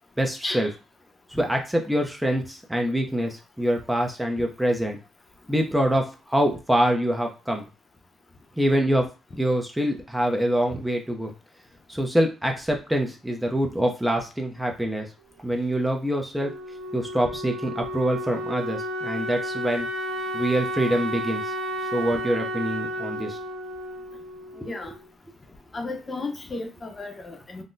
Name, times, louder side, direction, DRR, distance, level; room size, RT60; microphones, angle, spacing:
voice 1, 0.2-0.7 1.3-5.0 5.5-7.7 8.6-9.1 9.4-11.3 11.9-15.1 15.4-16.5 16.9-19.9 20.3-21.5 21.9-23.4 24.6-24.7, equal, 5° right, 2 dB, 0.5 m, -25 dB
Wind instrument woodwind instrument, 16.4-25.1, equal, 85° right, 0.7 m, -32 dB
voice 2, 24.6-24.9 25.7-27.6, left 2 dB, 30° left, 4 dB, 0.7 m, -33 dB
3.8 x 2.1 x 2.5 m, 0.31 s
cardioid pair, 90°, 0 cm